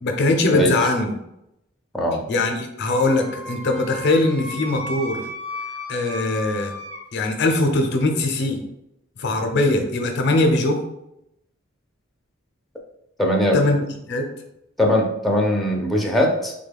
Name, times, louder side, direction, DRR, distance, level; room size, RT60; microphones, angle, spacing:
voice 1, 0.0-1.1 2.3-5.2 5.9-6.7 7.1-8.6 9.2-10.8 13.5-13.8 14.1-14.3, left 2 dB, 55° left, 4 dB, 0.5 m, -21 dB
Wind instrument woodwind instrument, 2.9-7.0, left 1 dB, 65° right, 1.2 m, -35 dB
voice 2, 13.2-13.6 14.8-16.5, equal, ahead, -1 dB, 0.4 m, -20 dB
3.5 x 2.2 x 3.3 m, 0.84 s
head